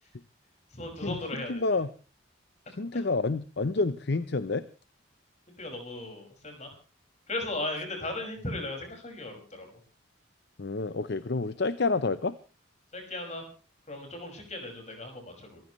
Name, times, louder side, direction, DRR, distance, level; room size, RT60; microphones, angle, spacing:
voice 1, 0.7-1.6 5.6-6.7 7.3-9.8 12.9-13.5 13.9-15.6, left 2 dB, 35° left, 3 dB, 5.7 m, -37 dB
voice 2, 1.5-1.9 2.8-4.7 10.6-12.4, left 3 dB, 55° left, 13 dB, 0.7 m, -28 dB
26.0 x 15.0 x 3.1 m, 0.35 s
head